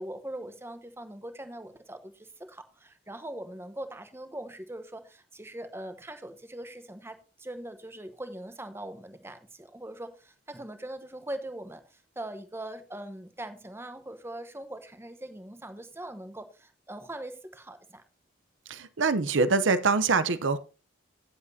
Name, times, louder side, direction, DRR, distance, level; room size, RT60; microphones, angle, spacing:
voice 1, 0.0-11.8 12.2-18.0, right 1 dB, 15° right, 1.0 m, -41 dB
voice 2, 18.7-20.6, right 4 dB, 80° right, 0.8 m, -24 dB
16.5 x 7.4 x 2.8 m
head